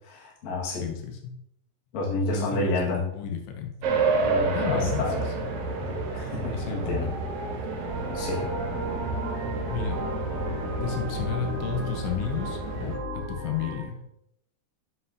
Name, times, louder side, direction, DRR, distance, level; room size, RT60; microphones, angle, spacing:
voice 1, 0.1-0.9 1.9-3.0 4.2-5.2 6.1-7.1 8.1-8.5, left 2 dB, 50° left, -4 dB, 2.5 m, -30 dB
voice 2, 0.8-1.4 2.2-3.7 4.5-5.5 5.8-5.9 6.5-7.1 9.7-10.0 10.8-14.0, left 7 dB, 80° left, 4 dB, 3.1 m, -32 dB
sound 1, 3.8-13.0, right 3 dB, 70° right, 2.2 m, -30 dB
sound 2, 7.9-13.8, right 1 dB, 15° right, 2.8 m, -35 dB
7.8 x 7.7 x 2.8 m, 0.76 s
omnidirectional pair, 5.1 m